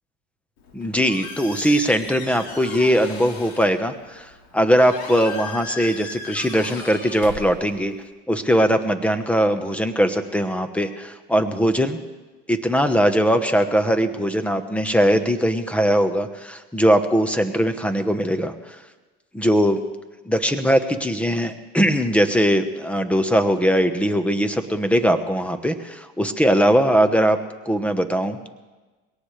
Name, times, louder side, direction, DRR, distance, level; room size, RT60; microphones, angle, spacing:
Squeak, 0.6-8.1, left 4 dB, 70° left, 4.2 m, -38 dB
voice 1, 0.7-7.9 8.3-12.0 12.5-18.5 19.3-19.8 20.2-27.4 27.6-28.5, equal, 5° left, 9 dB, 1.1 m, -20 dB
22.0 x 18.0 x 3.3 m, 1.2 s
supercardioid pair, 115°, 32 cm